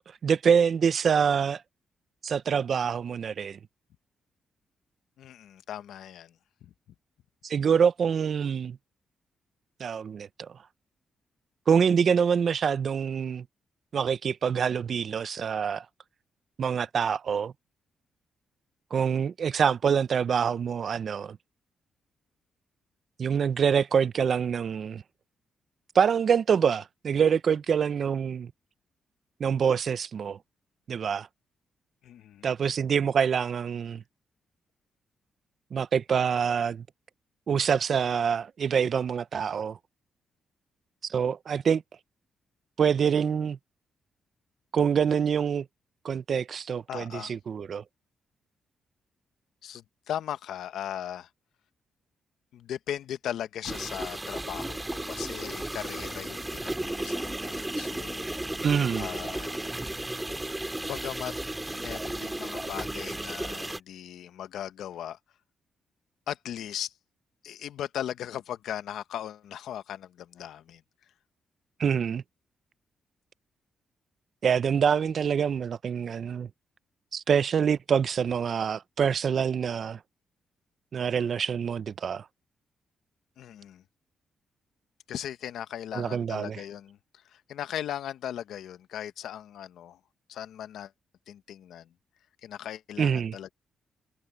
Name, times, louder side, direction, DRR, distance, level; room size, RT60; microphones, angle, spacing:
voice 1, 0.2-1.6 2.2-3.6 7.4-8.8 9.8-10.5 11.7-13.4 13.9-15.9 16.6-17.5 18.9-21.4 23.2-25.0 25.9-28.5 29.4-30.4 30.9-31.3 32.4-34.0 35.7-36.9 37.5-39.8 41.0-41.8 42.8-43.6 44.7-45.7 46.0-47.8 58.6-59.1 71.8-72.2 74.4-76.5 77.1-80.0 80.9-82.2 85.9-86.6 93.0-93.4, right 7 dB, 55° right, 0.7 m, -25 dB
voice 2, 5.2-6.3 6.6-6.7 32.0-32.5 46.9-47.3 49.6-51.3 52.5-58.6 59.0-59.6 60.8-61.3 61.8-65.2 66.3-66.9 67.4-70.8 83.4-83.8 85.1-87.0 87.3-90.0 90.3-90.9 91.3-91.9 92.4-93.5, left 10 dB, 80° left, 0.9 m, -38 dB
sound 1, 53.7-63.8, right 1 dB, 10° right, 2.8 m, -34 dB
cardioid pair, 85°, 0 cm